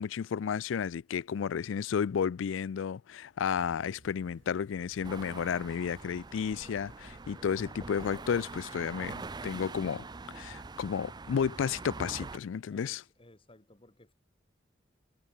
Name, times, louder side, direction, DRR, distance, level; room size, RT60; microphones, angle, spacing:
voice 1, 0.0-13.0, left 7 dB, 80° left, 0.4 m, -32 dB
sound 1, 3.5-10.2, right 2 dB, 75° right, 1.4 m, -61 dB
sound 2, 5.0-5.1 5.3-6.1 6.5-7.9, equal, 5° left, 7.7 m, -67 dB
sound 3, 5.0-12.4, right 3 dB, 20° right, 0.5 m, -44 dB
voice 2, 12.7-14.1, left 1 dB, 30° left, 2.2 m, -57 dB
head